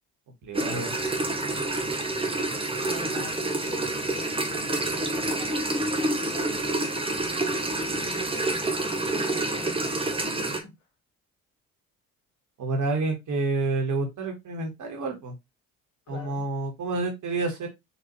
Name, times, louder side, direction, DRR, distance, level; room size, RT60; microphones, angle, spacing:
voice 1, 0.4-0.9 12.6-15.3 16.1-17.7, right 3 dB, 45° right, 1.5 m, -29 dB
sound 1, 0.5-10.6, right 2 dB, 15° right, 0.9 m, -28 dB
voice 2, 2.8-6.9 7.9-9.8 10.3-10.6 16.1-16.4, left 4 dB, 40° left, 2.1 m, -43 dB
4.1 x 2.9 x 3.0 m
figure-of-eight pair, 55°, 42 cm